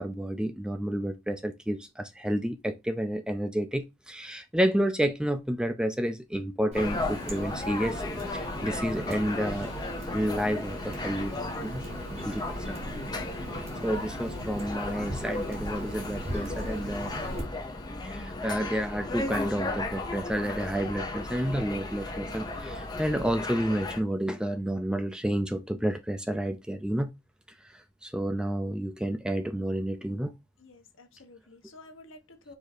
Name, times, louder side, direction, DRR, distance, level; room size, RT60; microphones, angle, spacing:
voice 1, 0.0-8.0 8.3-9.7 10.1-11.8 12.2-12.8 13.6-17.1 18.0-27.1 27.6-30.3, equal, 5° right, 0.3 m, -30 dB
sound 1, 6.7-24.0, left 2 dB, 20° left, 0.7 m, -36 dB
Water tap faucet, 6.7-17.4, right 1 dB, 35° right, 1.4 m, -39 dB
Telephone, 13.9-23.6, equal, 60° right, 1.7 m, -46 dB
voice 2, 30.6-32.6, left 2 dB, 75° left, 1.1 m, -51 dB
4.8 x 2.6 x 4.1 m
head